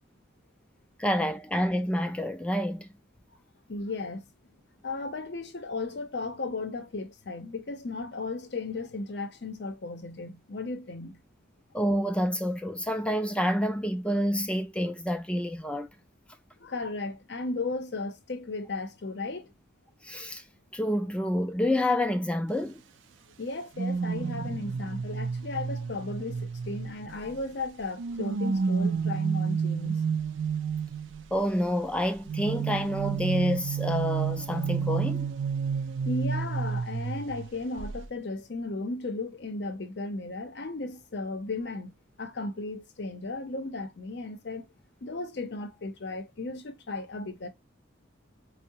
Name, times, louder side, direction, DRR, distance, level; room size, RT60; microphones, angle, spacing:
voice 1, 1.0-2.9 11.7-15.9 20.0-20.4 20.7-22.8 31.3-35.3, equal, 5° left, 0.3 m, -28 dB
voice 2, 3.7-4.3 4.8-11.2 16.6-19.5 23.4-30.0 36.1-44.7 45.0-47.5, left 3 dB, 60° left, 0.6 m, -35 dB
sound 1, 23.8-27.4 28.0-31.2 32.3-37.5 37.8-38.0, right 6 dB, 80° right, 0.4 m, -30 dB
4.5 x 2.0 x 2.7 m
head